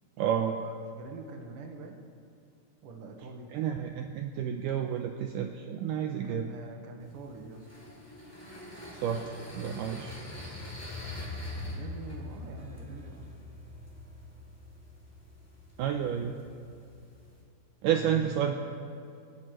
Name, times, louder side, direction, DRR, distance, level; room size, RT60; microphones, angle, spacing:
voice 1, 0.2-0.6 3.5-6.5 9.0-9.2 9.6-10.2 15.8-16.3 17.8-18.5, right 9 dB, 80° right, 4 dB, 2.0 m, -30 dB
voice 2, 1.0-2.0 2.8-3.5 6.2-7.7 11.4-13.4 17.9-18.3, right 3 dB, 55° right, 2 dB, 1.7 m, -44 dB
sound 1, 7.0-17.4, left 2 dB, 5° left, 2.0 m, -44 dB
28.5 x 10.5 x 3.2 m, 2.5 s
omnidirectional pair, 4.2 m